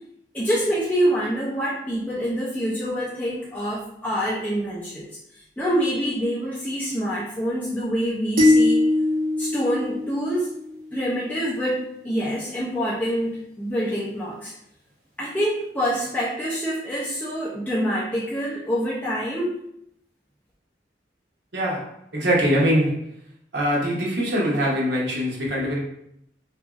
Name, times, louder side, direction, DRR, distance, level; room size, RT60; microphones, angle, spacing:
voice 1, 0.3-5.1 5.6-8.8 9.4-10.5 10.9-14.6 15.2-19.6, equal, 10° left, -8 dB, 0.4 m, -26 dB
sound 1, 8.4-10.8, left 2 dB, 50° right, 1.0 m, -21 dB
voice 2, 21.5-23.1 23.5-25.8, equal, 75° right, -4 dB, 0.8 m, -23 dB
2.8 x 2.5 x 2.3 m, 0.74 s
head